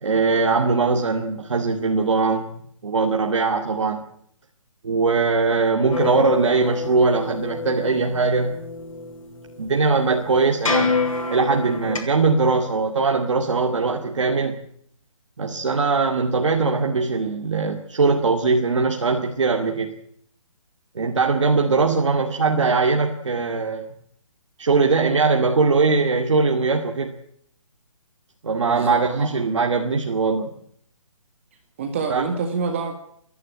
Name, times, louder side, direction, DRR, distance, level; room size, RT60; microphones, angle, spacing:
voice 1, 0.0-4.0 4.8-8.6 9.6-10.9 11.3-14.6 15.4-19.9 20.9-23.9 24.6-27.2 28.4-30.5 32.1-32.2, right 4 dB, 60° right, 2 dB, 2.4 m, -21 dB
sound 1, 5.9-12.0, left 4 dB, 75° left, 6.7 m, -27 dB
voice 2, 28.6-29.0 31.8-32.9, right 5 dB, 25° right, 4 dB, 2.0 m, -26 dB
29.0 x 11.0 x 9.8 m, 0.69 s
hypercardioid pair, 175°, 17 cm